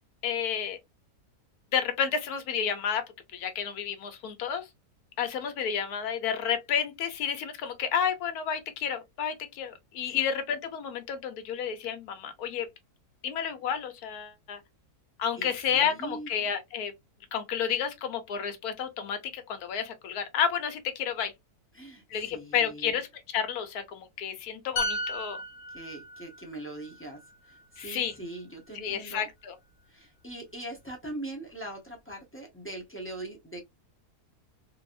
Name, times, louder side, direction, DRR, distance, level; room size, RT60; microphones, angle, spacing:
voice 1, 0.2-0.8 1.7-3.0 3.3-4.6 5.2-12.7 13.2-14.6 15.2-16.9 17.3-21.3 22.1-23.1 23.3-25.4 27.8-28.1 28.8-29.5, left 8 dB, 80° left, 1.2 m, -31 dB
voice 2, 15.4-16.3 21.7-23.0 25.7-29.3 29.9-33.6, right 1 dB, 10° left, 0.6 m, -41 dB
sound 1, 24.8-28.4 28.7-28.9, left 1 dB, 55° left, 0.6 m, -36 dB
3.0 x 2.7 x 2.4 m
omnidirectional pair, 1.6 m